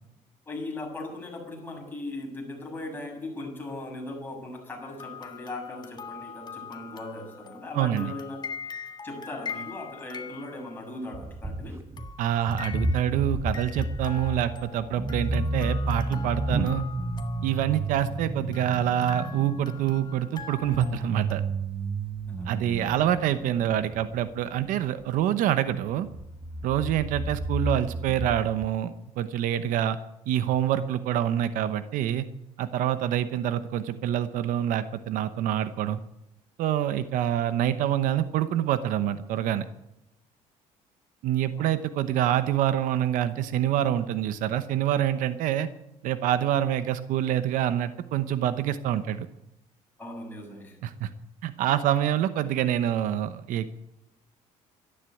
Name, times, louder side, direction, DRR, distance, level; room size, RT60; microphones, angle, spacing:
voice 1, 0.5-8.4 9.0-11.8 22.2-22.5 41.6-41.7 50.0-50.8, left 2 dB, 15° left, -1 dB, 7.3 m, -38 dB
sound 1, 4.8-11.1 12.0-13.3 13.5-18.2 18.5-21.3, left 6 dB, 30° left, 1.6 m, -43 dB
voice 2, 7.7-8.1 12.2-16.8 17.4-21.4 22.5-26.1 26.6-30.0 30.3-32.3 32.6-36.0 36.6-39.6 41.2-45.7 46.0-49.3 50.8-51.1 51.4-53.7, right 11 dB, 75° right, 12 dB, 0.9 m, -26 dB
sound 2, 11.1-12.1 12.4-24.5 25.7-25.8 26.0-28.7, right 2 dB, 20° right, 1.1 m, -32 dB
13.0 x 11.5 x 9.1 m, 0.87 s
cardioid pair, 115°, 14 cm